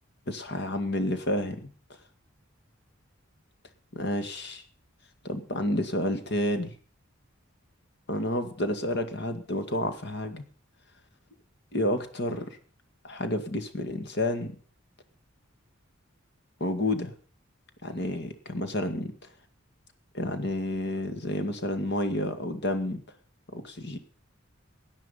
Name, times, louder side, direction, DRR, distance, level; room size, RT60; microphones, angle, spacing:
voice 1, 0.3-1.7 3.9-4.6 5.2-6.7 8.1-10.4 11.7-12.4 13.0-14.6 16.6-17.1 17.8-19.1 20.1-23.0 23.5-24.0, left 1 dB, 55° left, 9 dB, 2.0 m, -30 dB
17.0 x 10.0 x 5.5 m, 0.43 s
head